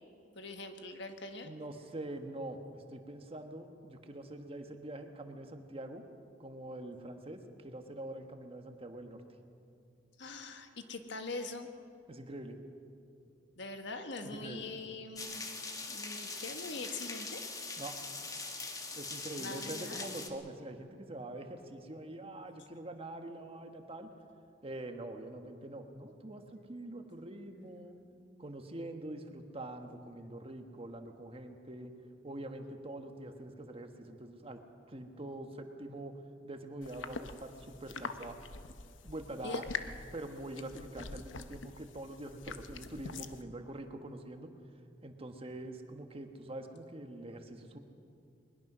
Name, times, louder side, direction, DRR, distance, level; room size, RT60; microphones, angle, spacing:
voice 1, 0.3-1.5 10.2-11.7 13.6-15.4 15.9-17.5 19.4-20.1 39.4-39.6, left 3 dB, 70° left, 6 dB, 1.6 m, -43 dB
voice 2, 1.4-6.0 6.4-9.2 12.1-12.6 14.2-14.7 17.8-18.0 19.0-24.1 24.6-28.0 28.4-31.9 32.2-34.6 34.9-38.4 39.0-39.6 40.1-44.5 45.0-47.8, right 1 dB, 30° right, 5 dB, 1.4 m, -44 dB
sound 1, 15.2-20.3, left 3 dB, 20° left, 1.5 m, -42 dB
sound 2, 36.8-43.4, left 4 dB, 90° left, 0.9 m, -44 dB
21.5 x 21.0 x 6.2 m, 2.5 s
head